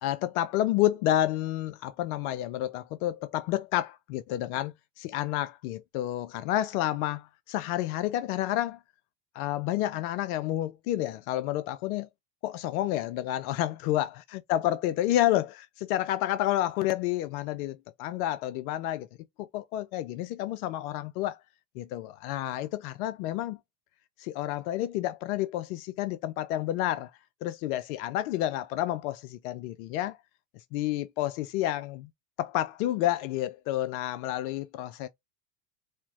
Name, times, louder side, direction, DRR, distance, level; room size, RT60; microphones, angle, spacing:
voice 1, 0.0-8.8 9.3-12.1 12.4-14.1 14.5-19.1 19.4-21.4 21.8-23.6 24.2-27.1 27.4-30.2 30.7-32.1 32.4-35.1, left 14 dB, 70° left, 0.5 m, -30 dB
4.4 x 2.0 x 2.3 m
hypercardioid pair, 85°, 47 cm